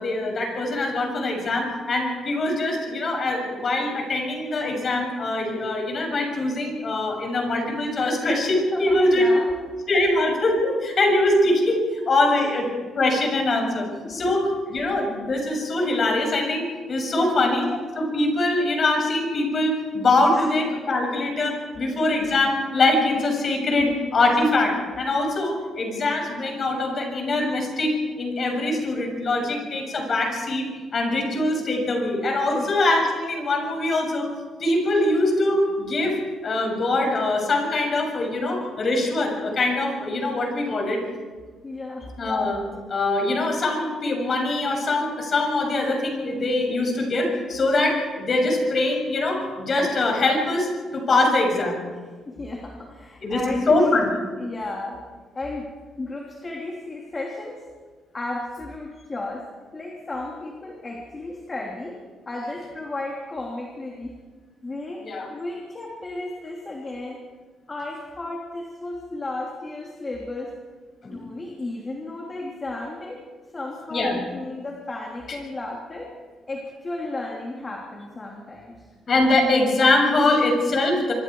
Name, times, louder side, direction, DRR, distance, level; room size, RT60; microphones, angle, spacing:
voice 1, 0.0-9.3 9.9-12.7 13.0-17.7 17.9-30.7 30.9-34.3 34.6-36.2 36.4-41.0 42.2-42.6 42.9-51.8 53.2-54.1 65.0-65.3 71.0-71.3 73.9-74.2 79.1-81.1, left 2 dB, 40° left, 2 dB, 7.2 m, -23 dB
voice 2, 8.7-9.5 12.3-12.4 14.0-14.2 17.1-17.4 20.3-20.4 23.7-23.8 32.5-32.7 41.6-42.1 52.3-54.0 54.4-55.0 55.3-55.7 56.0-57.7 58.1-59.5 59.7-62.0 62.2-64.2 64.6-65.0 65.3-67.2 67.7-70.5 71.0-73.2 73.5-76.1 76.5-78.9, left 2 dB, 25° left, -1 dB, 3.3 m, -34 dB
26.5 x 24.0 x 4.8 m, 1.5 s
cardioid pair, 125°, 0 cm